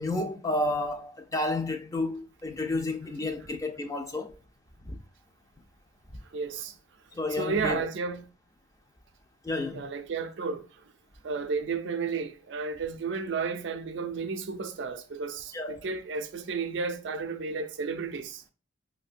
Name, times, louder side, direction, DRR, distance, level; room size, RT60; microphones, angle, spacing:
voice 1, 0.0-4.3 4.9-5.0 7.1-7.8 9.4-9.8 15.5-15.8, left 2 dB, 15° left, 0.3 m, -31 dB
voice 2, 6.3-6.7 7.3-8.3 9.7-10.8 11.2-18.4, right 5 dB, 65° right, 0.4 m, -32 dB
5.5 x 2.1 x 2.5 m
head